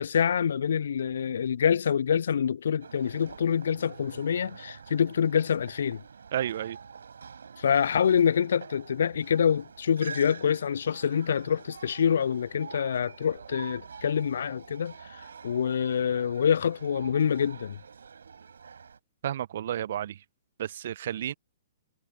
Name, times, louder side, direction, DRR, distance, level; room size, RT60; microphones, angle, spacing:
voice 1, 0.0-6.0 7.6-14.9 15.4-17.8, left 8 dB, 65° left, 0.4 m, -26 dB
sound 1, 2.8-19.0, right 6 dB, 70° right, 6.1 m, -47 dB
voice 2, 6.3-6.8 19.2-20.2 20.6-21.3, right 11 dB, 55° right, 1.4 m, -31 dB
figure-of-eight pair, 115°, 0 cm